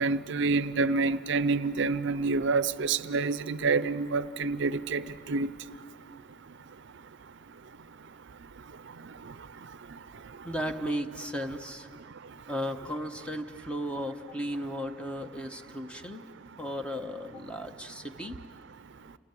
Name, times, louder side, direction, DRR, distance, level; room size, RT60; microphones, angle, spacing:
voice 1, 0.0-5.5, right 4 dB, 65° right, 0.5 m, -27 dB
voice 2, 10.4-11.9 12.5-16.2 16.6-18.4, equal, 5° left, 1.0 m, -35 dB
30.0 x 19.0 x 9.2 m
head